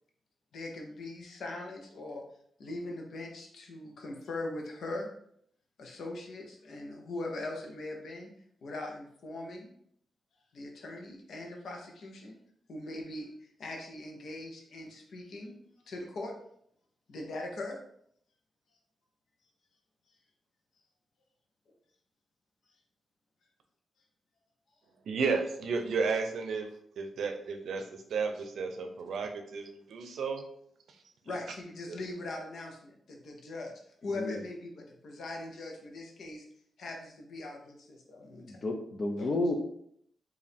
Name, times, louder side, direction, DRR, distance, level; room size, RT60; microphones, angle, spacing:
voice 1, 0.5-2.2 2.6-5.1 5.8-8.3 8.6-9.7 10.5-12.4 12.7-13.3 13.6-15.6 15.9-16.3 17.1-17.8 31.2-33.7 34.0-36.4 36.8-38.6 39.2-39.3, left 2 dB, 65° left, 1 dB, 0.9 m, -40 dB
voice 2, 25.1-26.7 27.0-30.4 31.9-32.0, right 4 dB, 75° right, 5 dB, 0.6 m, -33 dB
voice 3, 34.0-34.4 38.4-39.5, left 2 dB, 35° left, 3 dB, 0.5 m, -32 dB
4.7 x 2.6 x 3.5 m, 0.69 s
wide cardioid pair, 145°, 0 cm